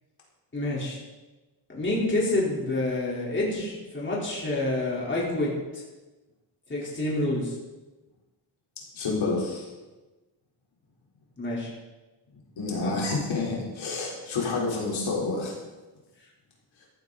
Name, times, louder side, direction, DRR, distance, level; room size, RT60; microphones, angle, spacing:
voice 1, 0.5-1.0 1.7-5.8 6.7-7.5 11.4-11.7 12.8-12.9, left 2 dB, 25° left, -4 dB, 4.2 m, -28 dB
voice 2, 8.9-9.7 12.6-15.6, left 3 dB, 90° left, -3 dB, 4.3 m, -29 dB
14.5 x 14.0 x 4.2 m, 1.2 s
wide cardioid pair, 135°, 45 cm